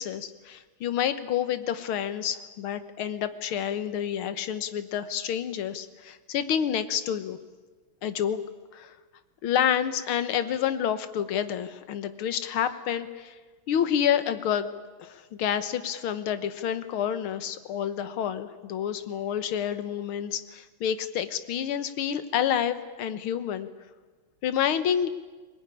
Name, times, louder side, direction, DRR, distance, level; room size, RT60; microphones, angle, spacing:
voice 1, 0.0-7.4 8.0-8.4 8.7-8.9 9.4-13.4 13.7-14.7 15.0-23.7 24.4-25.1, left 9 dB, 75° left, 12 dB, 2.0 m, -28 dB
21.5 x 19.5 x 10.0 m, 1.3 s
omnidirectional pair, 2.4 m